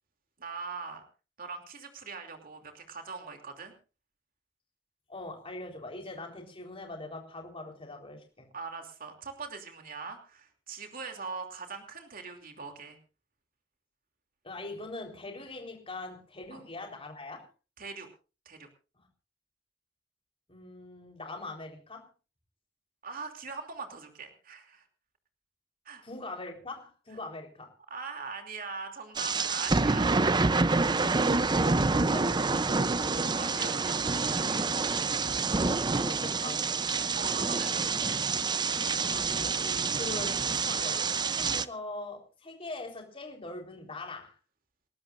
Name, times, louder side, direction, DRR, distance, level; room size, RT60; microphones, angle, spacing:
voice 1, 0.4-1.0 1.4-3.7 8.5-13.0 16.5-16.6 17.8-18.1 18.4-18.7 23.0-24.8 25.8-26.0 27.9-30.3 33.1-34.7 37.1-37.9, right 4 dB, 50° right, 4 dB, 2.9 m, -41 dB
voice 2, 5.1-8.5 14.4-17.5 19.0-19.1 20.5-22.1 26.0-27.7 31.0-33.7 35.7-36.8 39.0-44.4, left 2 dB, 30° left, 2 dB, 4.1 m, -42 dB
sound 1, 29.2-41.7, right 4 dB, 25° right, 0.6 m, -27 dB
29.0 x 13.0 x 2.6 m, 0.34 s
head